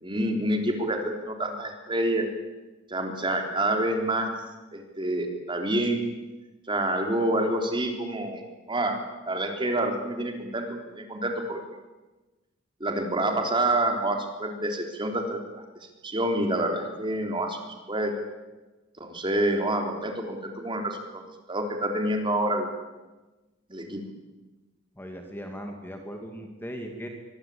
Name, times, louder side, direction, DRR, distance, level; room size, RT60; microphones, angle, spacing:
voice 1, 0.0-2.3 2.9-4.3 4.7-6.0 6.7-8.4 8.7-9.0 9.3-11.6 12.8-15.6 16.0-17.6 17.9-18.1 19.0-21.2 21.5-22.7 23.7-24.0, right 1 dB, 25° right, 4 dB, 3.9 m, -27 dB
voice 2, 25.0-27.1, equal, 10° left, 4 dB, 2.5 m, -38 dB
24.5 x 22.0 x 8.7 m, 1.1 s
head